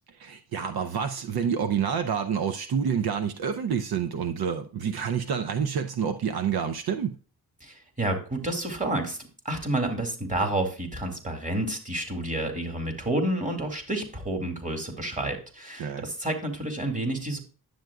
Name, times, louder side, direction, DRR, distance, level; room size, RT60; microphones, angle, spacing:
voice 1, 0.2-7.2 15.8-16.1, right 7 dB, 70° right, 0.7 m, -28 dB
voice 2, 7.6-9.2 9.4-17.4, right 1 dB, 20° right, 2.2 m, -29 dB
10.0 x 7.9 x 2.3 m
cardioid pair, 105°, 38 cm